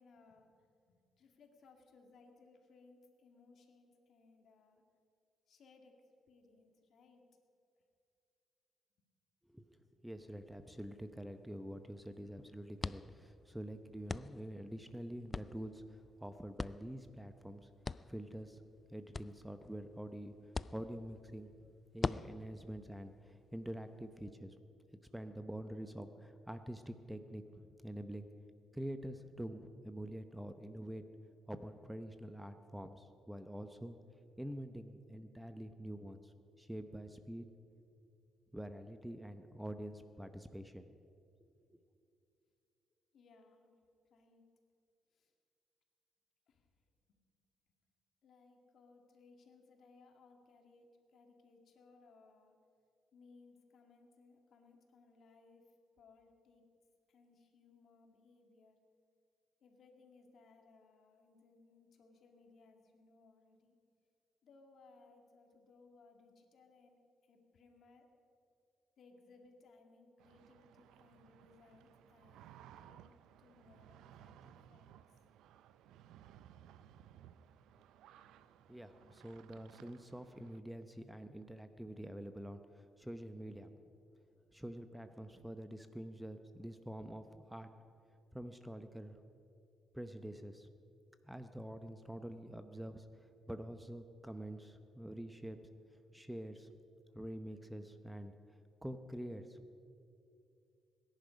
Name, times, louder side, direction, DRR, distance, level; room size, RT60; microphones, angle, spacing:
voice 1, 0.0-4.8 5.5-7.3 43.1-43.8 44.1-44.4 45.1-45.3 46.5-46.7 47.1-47.2 48.2-52.6 53.1-56.6 57.1-58.8 59.6-63.7 64.4-68.1 69.0-75.0, left 3 dB, 65° left, 3 dB, 2.2 m, -64 dB
voice 2, 9.5-17.7 18.1-18.6 18.9-20.3 20.7-21.5 21.9-24.6 25.1-28.3 28.7-31.0 31.5-34.0 34.4-37.5 38.5-40.9 41.4-41.5 78.7-83.8 84.5-87.7 88.3-89.2 89.9-90.7 91.2-93.1 93.5-95.6 96.1-96.7 97.1-98.3 98.8-99.6, right 1 dB, 5° right, 9 dB, 0.8 m, -46 dB
sound 1, 10.2-24.3, left 4 dB, 30° left, 0.3 m, -47 dB
sound 2, 70.2-80.6, right 10 dB, 90° right, 0.5 m, -60 dB
22.0 x 10.5 x 5.2 m, 2.5 s
cardioid pair, 90°, 0 cm